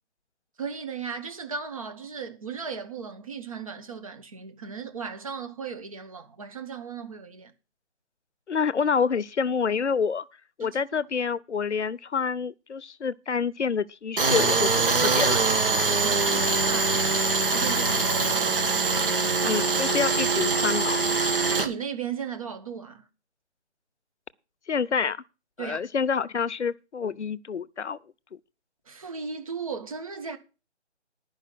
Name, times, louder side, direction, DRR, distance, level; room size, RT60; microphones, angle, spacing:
voice 1, 0.6-7.5 10.6-10.8 16.0-17.3 17.5-19.6 21.6-23.1 25.6-25.8 28.9-30.4, right 6 dB, 30° right, 1.2 m, -36 dB
voice 2, 8.5-10.2 10.6-15.4 19.4-21.2 24.7-25.2 25.6-28.0, left 6 dB, 75° left, 0.8 m, -27 dB
Tools, 14.2-21.7, right 4 dB, 50° right, 1.8 m, -23 dB
11.0 x 5.5 x 7.6 m
figure-of-eight pair, 165°, 35 cm